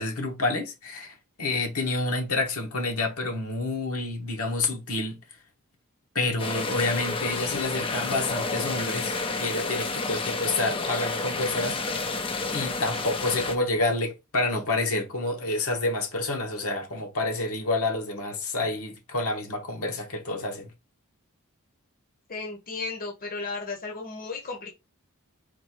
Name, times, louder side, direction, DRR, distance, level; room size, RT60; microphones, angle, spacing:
voice 1, 0.0-5.2 6.1-12.0 12.5-20.7, left 2 dB, 70° left, 1.3 m, -28 dB
sound 1, 6.4-13.5, left 3 dB, 25° left, 0.5 m, -30 dB
voice 2, 22.3-24.7, left 4 dB, 40° left, 1.1 m, -34 dB
4.3 x 2.6 x 4.4 m
head